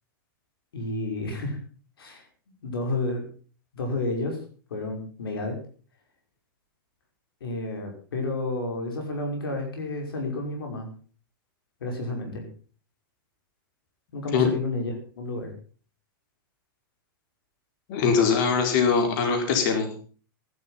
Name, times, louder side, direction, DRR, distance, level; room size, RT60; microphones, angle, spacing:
voice 1, 0.7-1.6 2.0-2.3 2.6-3.2 3.7-4.4 4.7-5.5 7.4-10.9 11.8-12.4 14.1-15.5, left 2 dB, 90° left, 3 dB, 5.6 m, -30 dB
voice 2, 17.9-19.9, left 5 dB, 55° left, 4 dB, 4.7 m, -22 dB
14.5 x 12.0 x 5.9 m, 0.40 s
hypercardioid pair, 130°, 12 cm